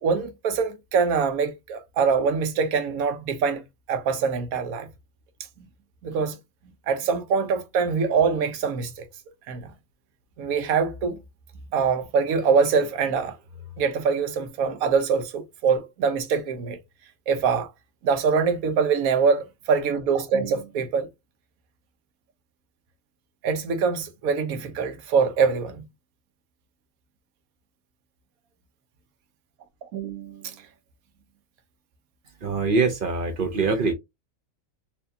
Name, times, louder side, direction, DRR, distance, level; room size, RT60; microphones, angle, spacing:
voice 1, 0.0-3.6 3.9-4.9 5.6-5.7 6.0-6.4 6.9-9.0 9.5-9.7 10.4-11.2 11.7-13.4 13.8-16.8 17.3-17.7 18.0-21.1 23.4-25.8 29.9-30.5, right 5 dB, 75° right, 1.3 m, -24 dB
voice 2, 32.4-33.9, right 4 dB, 50° right, 0.6 m, -23 dB
4.4 x 2.8 x 2.6 m
omnidirectional pair, 1.6 m